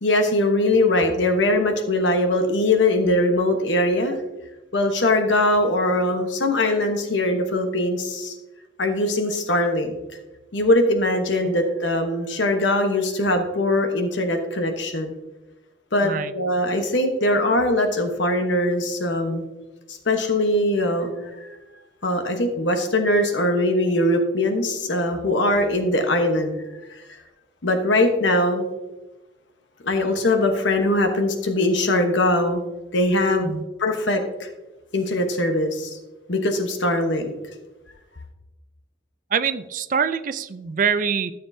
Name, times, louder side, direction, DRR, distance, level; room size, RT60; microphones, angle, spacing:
voice 1, 0.0-4.2 4.7-8.3 8.8-9.9 10.5-15.1 15.9-19.4 19.9-21.1 22.0-26.6 27.6-28.7 29.8-32.6 32.9-33.5 33.8-34.5 34.9-35.9 36.3-37.3, left 1 dB, 75° left, 5 dB, 1.0 m, -21 dB
voice 2, 16.0-16.3 33.4-33.6 39.3-41.3, right 6 dB, 45° right, 12 dB, 0.4 m, -24 dB
13.0 x 7.0 x 2.7 m, 1.1 s
head